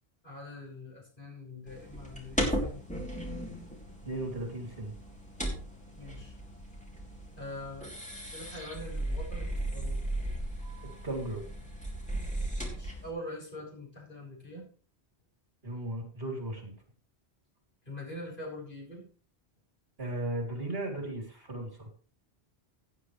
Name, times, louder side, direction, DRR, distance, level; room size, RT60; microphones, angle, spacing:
voice 1, 0.2-2.8 5.9-6.3 7.4-7.9 8.3-10.0 12.6-14.6 17.8-19.1, left 1 dB, 50° left, -2 dB, 6.6 m, -43 dB
sound 1, 1.7-13.1, right 1 dB, 5° left, 3.4 m, -36 dB
voice 2, 4.0-4.9 11.0-11.4 15.6-16.7 20.0-21.9, right 1 dB, 65° right, 2 dB, 3.3 m, -36 dB
16.5 x 9.6 x 3.3 m, 0.40 s
omnidirectional pair, 1.1 m